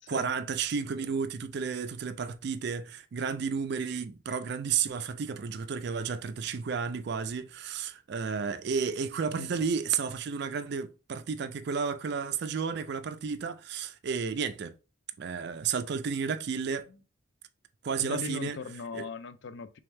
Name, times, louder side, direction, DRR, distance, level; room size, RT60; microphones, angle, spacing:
voice 1, 0.1-14.7 15.2-16.9 17.8-18.6 18.9-19.0, right 6 dB, 55° right, 0.4 m, -32 dB
voice 2, 18.0-19.8, left 5 dB, 65° left, 0.4 m, -39 dB
3.4 x 3.4 x 3.2 m
head